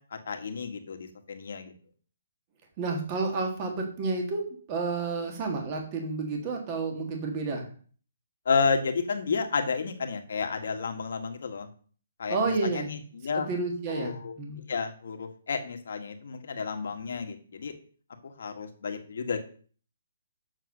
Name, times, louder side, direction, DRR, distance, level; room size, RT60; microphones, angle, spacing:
voice 1, 0.1-1.7 8.4-11.7 12.2-13.5 13.9-14.3 14.7-17.7 18.2-19.4, left 5 dB, 50° left, 5 dB, 1.8 m, -31 dB
voice 2, 2.8-4.4 4.7-7.7 12.3-12.9 13.3-14.6, right 3 dB, 20° right, 3 dB, 1.6 m, -30 dB
8.0 x 6.5 x 6.6 m, 0.43 s
hypercardioid pair, 180°, 0 cm